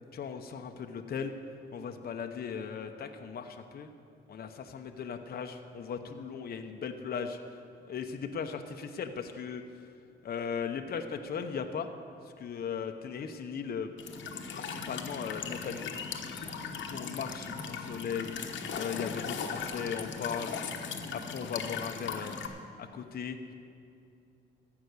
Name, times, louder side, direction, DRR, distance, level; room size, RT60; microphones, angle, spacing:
voice 1, 0.1-1.3 1.7-3.9 4.3-7.4 7.9-9.6 10.2-11.9 12.4-13.9 14.5-15.9 16.9-18.3 18.8-20.5 21.1-22.4 22.8-23.5, left 6 dB, 50° left, 6 dB, 0.8 m, -37 dB
Walk footsteps / Chirp tweet / Stream, 14.0-22.5, left 5 dB, 70° left, 1.1 m, -38 dB
14.5 x 5.9 x 8.3 m, 2.6 s
cardioid pair, 90°, 20 cm